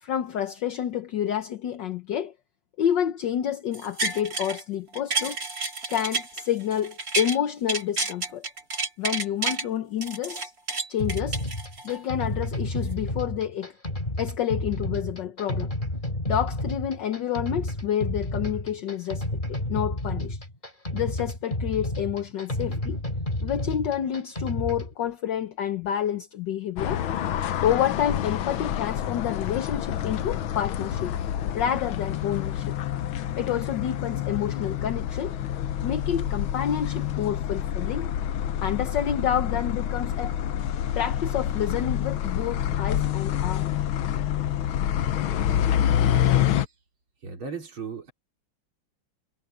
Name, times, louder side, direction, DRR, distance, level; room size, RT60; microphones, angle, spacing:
voice 1, 0.0-2.3 2.8-5.4 5.9-8.4 9.0-10.5 10.9-11.4 11.8-13.7 14.2-15.7 16.3-20.4 20.9-23.0 23.4-27.0 27.6-31.1 31.5-32.8 33.4-35.4 35.8-38.1 38.6-40.4 40.9-43.7, left 10 dB, 65° left, 1.6 m, -29 dB
sound 1, 3.7-4.6 4.9-7.4 7.7-9.6 10.0-12.0 12.5-12.6, right 3 dB, 45° right, 5.0 m, -30 dB
sound 2, 11.0-24.9, left 1 dB, 20° left, 3.6 m, -31 dB
sound 3, 26.8-46.7, left 10 dB, 80° left, 1.7 m, -27 dB
voice 2, 47.2-48.1, right 5 dB, 85° right, 4.6 m, -36 dB
omnidirectional pair, 2.2 m